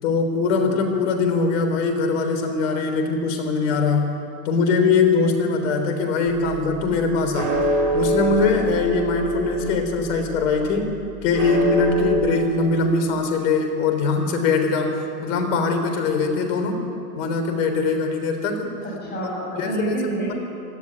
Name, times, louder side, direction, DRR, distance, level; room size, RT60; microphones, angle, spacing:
voice 1, 0.0-4.2 4.4-7.5 7.9-10.9 11.2-16.8 17.2-18.7 19.6-19.9, left 4 dB, 55° left, 5 dB, 3.9 m, -22 dB
sound 1, 6.3-12.2, right 1 dB, 85° right, 5.4 m, -26 dB
voice 2, 18.8-20.3, right 1 dB, 20° left, -3 dB, 7.1 m, -28 dB
18.0 x 15.0 x 9.7 m, 2.6 s
hypercardioid pair, 125°, 46 cm